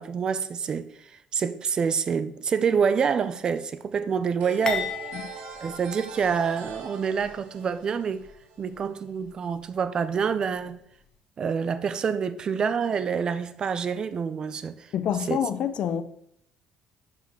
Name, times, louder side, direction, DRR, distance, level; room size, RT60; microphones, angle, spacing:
voice 1, 0.0-4.9 5.6-8.3 8.6-10.8 11.4-14.9 15.3-15.4, right 6 dB, 35° right, 0.4 m, -27 dB
sound 1, 4.4-9.0, right 5 dB, 80° right, 1.2 m, -42 dB
sound 2, 4.7-6.8 7.2-7.3 8.2-8.4, left 6 dB, 30° left, 1.1 m, -35 dB
voice 2, 14.9-16.0, left 9 dB, 55° left, 0.5 m, -27 dB
5.3 x 5.1 x 6.1 m
cardioid pair, 120°, 2 cm